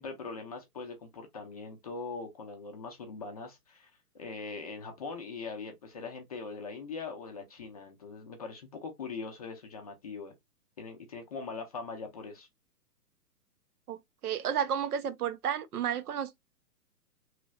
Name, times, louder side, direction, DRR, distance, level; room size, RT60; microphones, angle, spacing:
voice 1, 0.0-10.3 10.8-12.5, left 4 dB, 25° left, 0.5 m, -41 dB
voice 2, 14.2-16.4, right 8 dB, 70° right, 0.7 m, -31 dB
3.1 x 3.0 x 2.2 m
hypercardioid pair, 135°, 47 cm